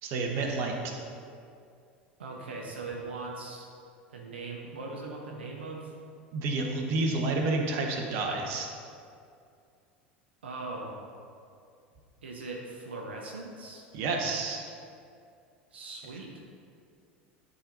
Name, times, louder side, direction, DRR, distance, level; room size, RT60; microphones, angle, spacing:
voice 1, 0.0-0.9 6.3-8.7 13.9-14.7, right 3 dB, 50° right, 1 dB, 1.2 m, -29 dB
voice 2, 2.2-3.7 4.1-5.9 10.4-11.0 12.2-13.9 15.7-16.4, right 3 dB, 75° right, -1 dB, 1.0 m, -40 dB
11.5 x 4.1 x 5.2 m, 2.4 s
figure-of-eight pair, 75°, 6 cm